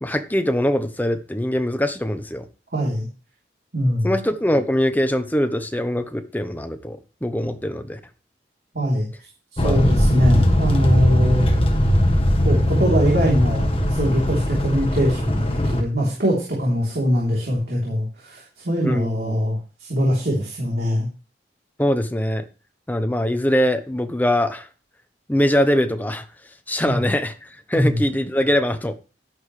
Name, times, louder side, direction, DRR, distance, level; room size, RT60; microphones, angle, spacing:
voice 1, 0.0-2.5 4.0-8.0 9.6-9.8 18.8-19.4 21.8-22.5 22.9-24.7 25.3-26.2 26.7-27.3 27.7-28.9, equal, 10° left, 0.8 m, -22 dB
voice 2, 2.7-3.1 3.7-4.1 8.7-9.1 9.6-11.5 12.4-21.1 26.8-27.0 27.7-28.0, equal, 60° right, 3.4 m, -22 dB
sound 1, 9.6-15.8, equal, 30° left, 1.5 m, -19 dB
11.5 x 10.5 x 3.3 m
head